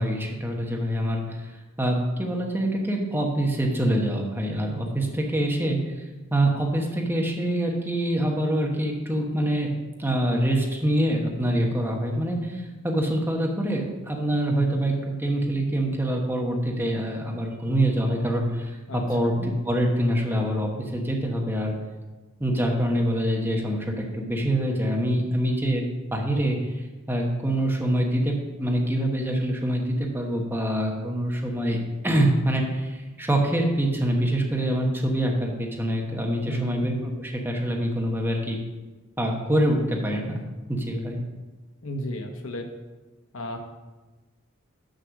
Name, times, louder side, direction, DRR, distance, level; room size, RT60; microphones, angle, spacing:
voice 1, 0.0-1.4 1.8-9.7 10.0-19.3 19.6-21.7 22.4-31.8 32.0-38.6 39.2-40.4 40.7-41.2, right 1 dB, 10° right, 0 dB, 1.1 m, -25 dB
voice 2, 18.9-19.5 36.4-36.9 41.8-42.7 43.3-43.6, equal, 80° left, 4 dB, 1.1 m, -33 dB
6.5 x 6.5 x 6.3 m, 1.2 s
head